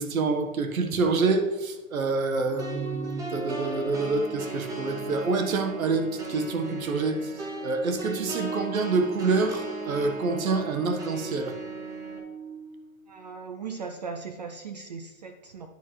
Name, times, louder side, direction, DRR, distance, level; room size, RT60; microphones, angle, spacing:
voice 1, 0.0-7.3 7.6-11.5, right 3 dB, 80° right, 7 dB, 1.5 m, -27 dB
Organ, 2.4-13.3, right 7 dB, 55° right, 3.0 m, -41 dB
sound 1, 2.6-12.2, right 1 dB, 10° right, 0.8 m, -38 dB
voice 2, 13.1-15.7, right 5 dB, 35° right, 6 dB, 0.4 m, -38 dB
9.5 x 9.1 x 3.2 m, 1.2 s
hypercardioid pair, 150°, 41 cm